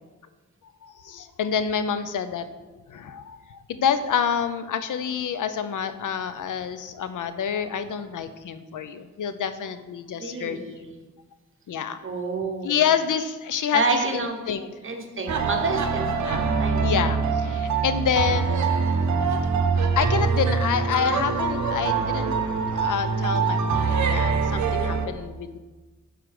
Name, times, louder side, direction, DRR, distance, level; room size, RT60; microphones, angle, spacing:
voice 1, 0.8-2.5 2.9-10.6 11.7-12.0 12.6-14.7 16.2-16.4 16.8-18.6 20.0-22.3 22.7-25.6, left 7 dB, 80° left, 11 dB, 0.6 m, -27 dB
voice 2, 10.2-10.9 12.0-12.8 13.7-14.4 14.8-16.9, right 3 dB, 40° right, 3 dB, 1.1 m, -29 dB
sound 1, 15.3-25.1, right 5 dB, 65° right, 0.8 m, -24 dB
6.9 x 4.9 x 5.9 m, 1.2 s
wide cardioid pair, 130°, 30 cm